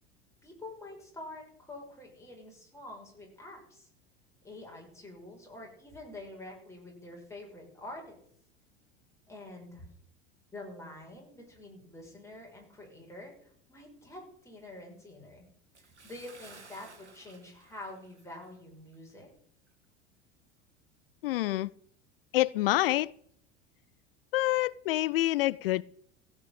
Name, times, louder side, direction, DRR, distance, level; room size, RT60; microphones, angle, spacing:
voice 1, 0.4-3.9 4.4-8.2 9.3-9.9 10.5-15.5 16.0-19.3, left 1 dB, 10° left, 5.9 m, -47 dB
Bathtub (filling or washing) / Splash splatter, 15.7-18.6 18.9-19.1 19.7-19.8, right 4 dB, 85° right, 1.7 m, -55 dB
voice 2, 21.2-21.7 22.3-23.1 24.3-25.8, left 16 dB, 55° left, 0.5 m, -27 dB
15.5 x 5.9 x 8.5 m
figure-of-eight pair, 75°, 34 cm